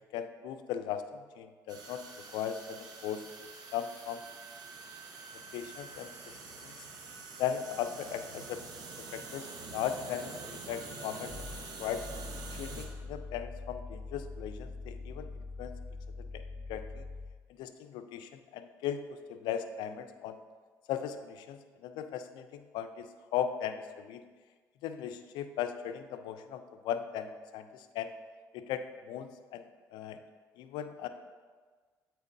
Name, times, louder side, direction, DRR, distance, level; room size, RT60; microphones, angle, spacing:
voice 1, 0.1-2.0 2.3-3.2 3.7-4.2 5.5-6.7 7.4-8.6 9.0-11.5 11.8-12.1 12.6-15.7 16.2-16.4 16.7-17.0 17.6-20.4 20.9-24.2 24.8-28.1 28.5-30.2 30.6-31.1, left 9 dB, 80° left, 9 dB, 0.4 m, -38 dB
sound 1, 1.7-12.9, right 4 dB, 60° right, 0.9 m, -46 dB
sound 2, 11.3-17.5, left 3 dB, 40° left, 0.9 m, -43 dB
8.2 x 4.5 x 2.6 m, 1.5 s
supercardioid pair, 75°, 8 cm